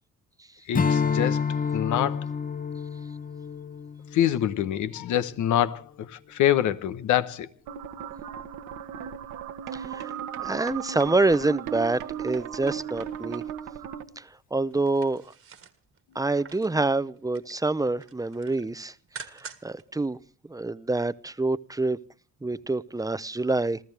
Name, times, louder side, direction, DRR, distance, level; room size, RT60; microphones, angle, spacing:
voice 1, 0.7-1.4 1.7-2.3 4.1-7.5, left 11 dB, 75° left, 1.1 m, -25 dB
Strum, 0.7-5.4, left 6 dB, 30° left, 0.9 m, -29 dB
sound 1, 7.7-14.0, right 9 dB, 85° right, 1.6 m, -36 dB
voice 2, 9.7-10.1 10.4-13.4 14.2-15.2 16.1-18.9 19.2-20.2 20.5-22.0 22.4-23.8, right 2 dB, 10° right, 0.7 m, -27 dB
sound 2, 14.7-16.8 17.2-17.7 18.0-19.8 20.2-20.3, right 5 dB, 45° right, 1.8 m, -46 dB
28.0 x 14.5 x 3.4 m
cardioid pair, 90°, 30 cm